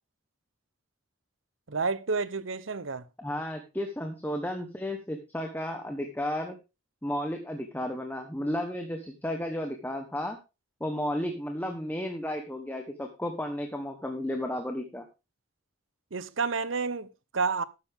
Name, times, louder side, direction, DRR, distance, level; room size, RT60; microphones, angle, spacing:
voice 1, 1.7-3.0 16.1-17.6, right 4 dB, 65° right, 0.9 m, -30 dB
voice 2, 3.2-6.6 7.0-10.4 10.8-15.0, left 1 dB, 10° left, 1.3 m, -33 dB
13.0 x 9.7 x 3.6 m
head